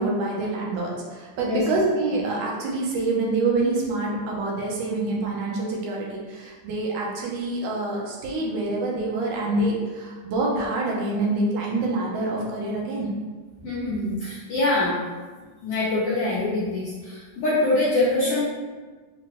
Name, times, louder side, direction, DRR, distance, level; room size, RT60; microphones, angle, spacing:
voice 1, 0.0-13.1, right 2 dB, 80° right, -2 dB, 2.2 m, -26 dB
voice 2, 13.6-14.9 15.6-18.4, left 2 dB, 70° left, -8 dB, 1.4 m, -24 dB
5.2 x 3.0 x 3.1 m, 1.4 s
omnidirectional pair, 3.6 m